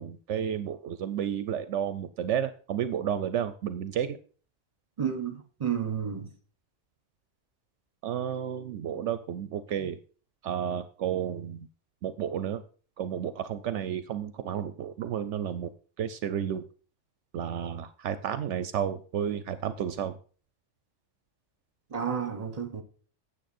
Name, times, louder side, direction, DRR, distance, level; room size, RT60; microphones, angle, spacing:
voice 1, 0.0-4.2 8.0-10.0 10.4-11.7 12.0-12.6 13.0-15.7 16.0-16.6 17.3-20.1, right 9 dB, 75° right, 0.9 m, -32 dB
voice 2, 5.0-6.3 9.8-9.9 21.9-22.8, right 7 dB, 35° right, 1.2 m, -31 dB
9.1 x 7.6 x 4.2 m
omnidirectional pair, 1.3 m